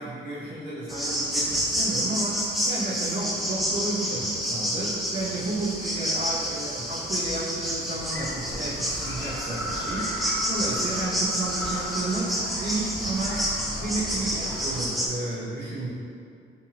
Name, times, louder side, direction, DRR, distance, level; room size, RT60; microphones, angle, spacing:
voice 1, 0.0-15.9, right 2 dB, 60° right, -10 dB, 0.8 m, -32 dB
sound 1, 0.9-15.1, equal, ahead, 0.4 m, -29 dB
sound 2, 8.0-14.9, left 1 dB, 75° left, 0.6 m, -39 dB
2.7 x 2.7 x 2.7 m, 2.4 s
cardioid pair, 90°, 20 cm